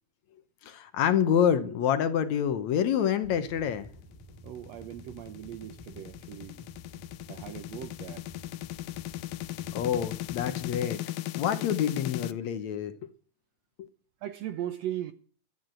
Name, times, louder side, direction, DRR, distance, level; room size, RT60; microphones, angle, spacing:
voice 1, 0.6-3.9 9.7-11.0 11.4-12.9 13.8-13.9, left 8 dB, 65° left, 2.0 m, -27 dB
sound 1, 3.2-10.9, right 1 dB, 5° right, 2.9 m, -51 dB
sound 2, 4.2-12.3, left 15 dB, 85° left, 2.4 m, -37 dB
voice 2, 4.4-6.6 7.3-8.2 14.2-15.1, right 12 dB, 70° right, 1.6 m, -38 dB
13.5 x 9.3 x 7.7 m
omnidirectional pair, 3.8 m